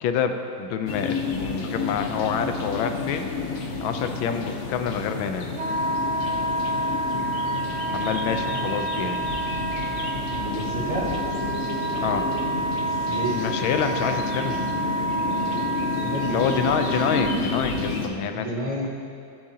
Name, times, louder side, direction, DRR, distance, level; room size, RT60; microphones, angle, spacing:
voice 1, 0.0-5.5 7.9-9.2 11.9-12.3 13.3-14.6 16.3-18.5, left 7 dB, 85° left, 7 dB, 1.5 m, -27 dB
sound 1, 0.9-18.1, left 3 dB, 50° left, 0.9 m, -30 dB
Wind instrument woodwind instrument, 5.6-17.4, right 1 dB, 75° right, 0.6 m, -29 dB
voice 2, 10.3-11.1 13.1-13.4 16.0-16.5 18.3-18.9, right 1 dB, 35° right, -5 dB, 1.7 m, -30 dB
21.0 x 7.6 x 2.8 m, 2.4 s
omnidirectional pair, 2.2 m